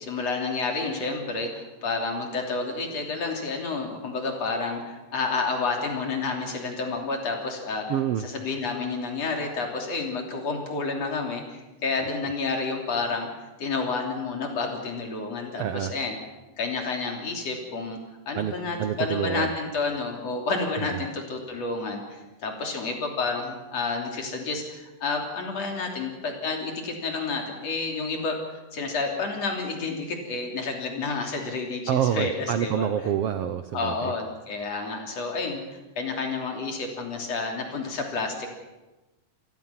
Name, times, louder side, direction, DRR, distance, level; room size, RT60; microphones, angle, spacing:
voice 1, 0.0-7.9 8.2-13.3 13.6-16.2 16.6-18.0 18.3-32.9 33.7-38.5, left 3 dB, 50° left, 2 dB, 4.2 m, -30 dB
voice 2, 7.9-8.2 15.6-15.9 18.3-18.5 18.8-19.5 20.8-21.0 31.9-34.1, right 10 dB, 75° right, 10 dB, 1.4 m, -27 dB
28.0 x 18.5 x 5.9 m, 1.1 s
omnidirectional pair, 3.7 m